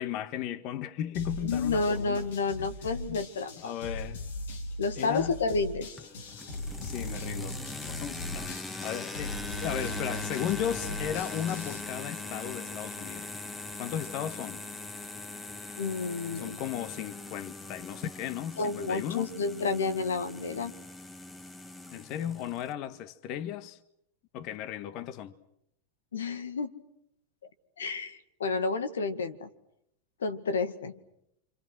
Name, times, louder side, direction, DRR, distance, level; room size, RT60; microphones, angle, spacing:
voice 1, 0.0-2.3 3.1-3.2 3.6-4.3 5.0-5.4 6.8-7.6 7.8-13.3 13.8-14.6 16.3-19.3 21.9-23.8 24.3-25.3, left 10 dB, 50° left, 1.6 m, -35 dB
sound 1, 1.1-11.8, left 1 dB, 75° left, 4.2 m, -39 dB
voice 2, 1.4-3.7 4.8-5.9 15.8-16.6 18.6-20.7 26.1-26.7 27.8-29.5 30.2-30.9, left 4 dB, 90° left, 1.9 m, -30 dB
sound 2, 6.0-22.7, left 3 dB, 15° left, 1.7 m, -41 dB
29.5 x 26.0 x 6.4 m
hypercardioid pair, 110°, 0 cm